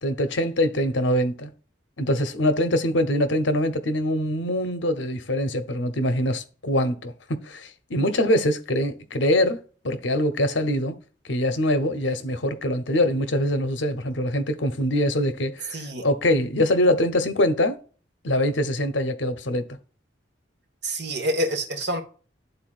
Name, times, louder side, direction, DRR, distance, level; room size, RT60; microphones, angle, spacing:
voice 1, 0.0-1.5 2.0-11.0 11.3-17.8 18.2-19.6, left 1 dB, 70° left, 0.9 m, -23 dB
voice 2, 15.7-16.1 20.8-22.0, equal, 65° right, 1.5 m, -27 dB
11.0 x 4.0 x 2.4 m
head